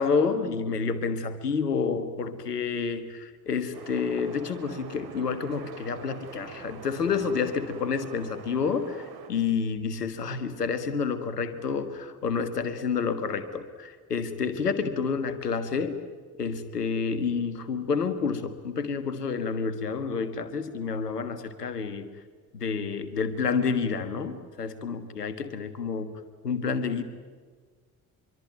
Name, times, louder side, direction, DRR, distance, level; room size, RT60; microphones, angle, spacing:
voice 1, 0.0-16.0 16.4-22.1 22.5-26.1 26.4-27.0, left 5 dB, 80° left, 11 dB, 1.6 m, -29 dB
sound 1, 3.7-9.3, right 5 dB, 50° right, 3.4 m, -44 dB
25.5 x 23.5 x 9.2 m, 1.5 s
figure-of-eight pair, 45°, 46 cm